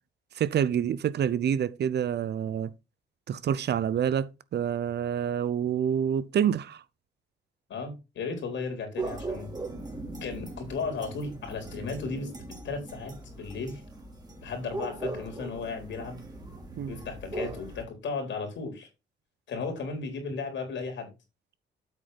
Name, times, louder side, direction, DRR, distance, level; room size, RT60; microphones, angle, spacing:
voice 1, 0.3-2.7 3.3-6.8 16.8-17.0, right 9 dB, 60° right, 0.8 m, -27 dB
voice 2, 7.7-9.5 10.2-12.3 12.6-13.8 14.4-16.2 16.9-18.9 19.5-21.1, left 4 dB, 70° left, 4.1 m, -35 dB
sound 1, 9.0-17.8, right 2 dB, 20° right, 3.0 m, -39 dB
8.3 x 6.5 x 4.2 m
cardioid pair, 90°, 20 cm